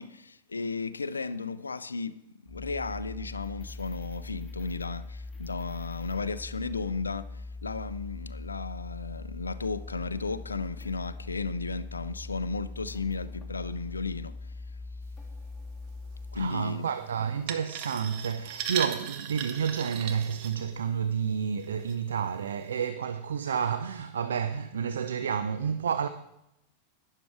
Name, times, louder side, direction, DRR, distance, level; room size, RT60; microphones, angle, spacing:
voice 1, 0.0-2.1 2.5-14.3 16.3-16.9, left 4 dB, 75° left, 0.4 m, -34 dB
sound 1, 2.5-16.4, left 3 dB, ahead, 2.1 m, -41 dB
voice 2, 16.3-26.1, right 7 dB, 65° right, 0.5 m, -30 dB
sound 2, 17.5-21.1 21.6-21.9 22.5-22.6, right 8 dB, 45° right, 1.1 m, -36 dB
12.0 x 9.9 x 4.6 m
figure-of-eight pair, 90°, 0 cm